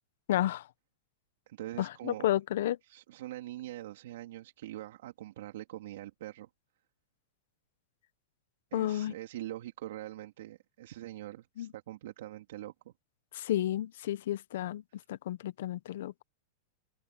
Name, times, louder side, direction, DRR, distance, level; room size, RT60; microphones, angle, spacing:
voice 1, 0.3-0.7 1.8-2.8 8.7-9.1 11.6-11.7 13.3-14.8 15.1-16.2, left 13 dB, 70° left, 1.1 m, -31 dB
voice 2, 1.5-2.3 2.9-6.5 8.7-12.9, right 14 dB, 70° right, 3.0 m, -43 dB
hypercardioid pair, 125°, 0 cm